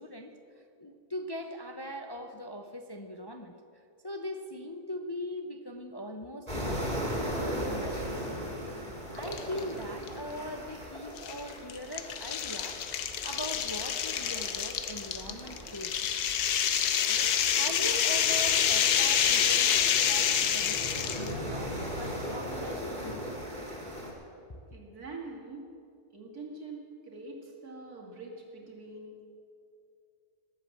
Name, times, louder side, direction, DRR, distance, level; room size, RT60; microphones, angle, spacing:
voice 1, 0.0-3.5 4.0-8.6 9.1-12.8 13.2-15.9 17.1-23.0 24.5-24.6, equal, 40° left, 5 dB, 0.3 m, -41 dB
sound 1, 6.5-24.1, equal, 25° right, 3.0 m, -38 dB
sound 2, 9.2-9.6 10.1-10.2 11.2-21.3, left 9 dB, 90° left, 1.3 m, -27 dB
voice 2, 24.7-25.7 26.1-29.3, right 3 dB, 75° right, -1 dB, 2.8 m, -44 dB
19.0 x 8.3 x 7.3 m, 2.5 s
omnidirectional pair, 1.6 m